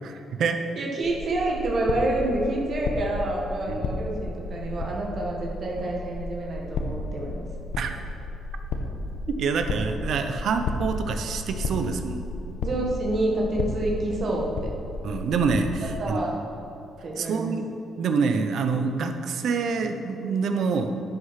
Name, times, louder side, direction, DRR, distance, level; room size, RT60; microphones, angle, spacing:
voice 1, 0.0-0.6 3.7-3.9 7.8-7.9 9.3-12.3 15.0-16.2 17.2-17.7 18.0-21.0, right 5 dB, 70° right, 7 dB, 0.9 m, -26 dB
voice 2, 0.7-7.5 12.6-14.7 16.0-16.4 17.0-17.5, right 1 dB, 50° right, -2 dB, 1.7 m, -28 dB
sound 1, 1.0-16.1, left 2 dB, 75° left, 1.0 m, -33 dB
10.5 x 6.7 x 5.8 m, 2.9 s
cardioid pair, 90°, 0 cm